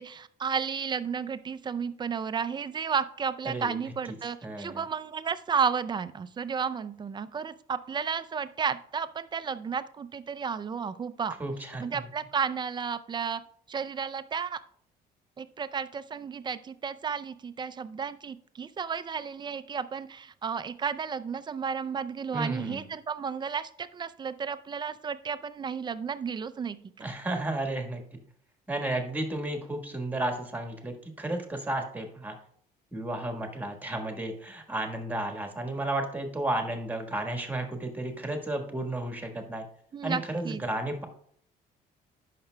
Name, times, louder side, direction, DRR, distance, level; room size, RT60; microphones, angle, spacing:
voice 1, 0.0-11.3 11.8-13.4 13.7-14.6 15.4-27.1 39.9-40.6, right 6 dB, 25° right, 13 dB, 0.4 m, -33 dB
voice 2, 3.4-3.8 4.4-4.8 11.4-12.0 22.3-22.9 27.0-28.0 28.7-32.4 32.9-39.6 40.0-41.1, right 1 dB, 10° right, 4 dB, 1.4 m, -33 dB
16.0 x 5.8 x 2.2 m, 0.64 s
cardioid pair, 110°, 17 cm